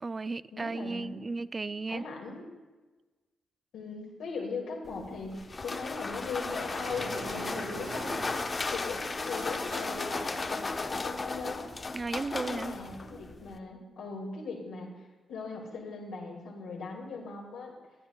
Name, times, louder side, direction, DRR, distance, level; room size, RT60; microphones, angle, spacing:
voice 1, 0.0-2.0 11.9-12.7, right 3 dB, 40° right, 16 dB, 0.3 m, -34 dB
voice 2, 0.5-1.3 1.5-2.4 3.7-8.2 8.7-11.7 12.4-17.8, left 4 dB, 75° left, -1 dB, 2.2 m, -39 dB
sound 1, 4.8-13.6, left 3 dB, 40° left, 0.8 m, -36 dB
sound 2, 6.2-11.5, right 4 dB, 65° right, 1.0 m, -45 dB
22.0 x 10.0 x 2.3 m, 1.2 s
hypercardioid pair, 40°, 0 cm